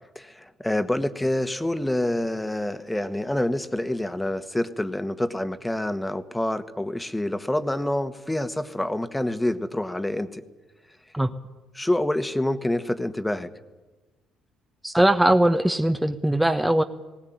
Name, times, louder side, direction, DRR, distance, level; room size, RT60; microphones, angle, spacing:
voice 1, 0.1-10.4 11.7-13.5, left 1 dB, 10° left, 12 dB, 1.6 m, -27 dB
voice 2, 14.8-16.8, right 1 dB, 5° right, 7 dB, 1.1 m, -20 dB
19.5 x 18.5 x 9.4 m, 1.2 s
hypercardioid pair, 50°, 0 cm